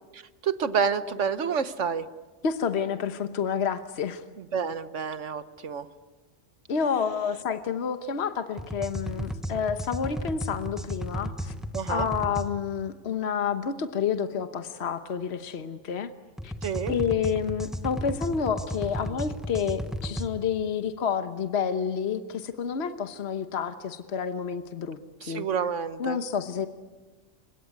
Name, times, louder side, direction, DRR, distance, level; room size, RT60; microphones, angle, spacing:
voice 1, 0.1-2.1 4.5-5.9 11.7-12.1 16.6-16.9 25.2-26.2, right 6 dB, 85° right, 12 dB, 1.4 m, -29 dB
voice 2, 2.4-4.2 6.7-11.5 11.9-16.1 16.4-16.5 16.9-25.5 26.0-26.7, left 7 dB, 65° left, 9 dB, 1.3 m, -29 dB
sound 1, 8.6-12.5 16.4-20.3, equal, ahead, 0.9 m, -34 dB
29.5 x 17.0 x 9.6 m, 1.3 s
omnidirectional pair, 1.2 m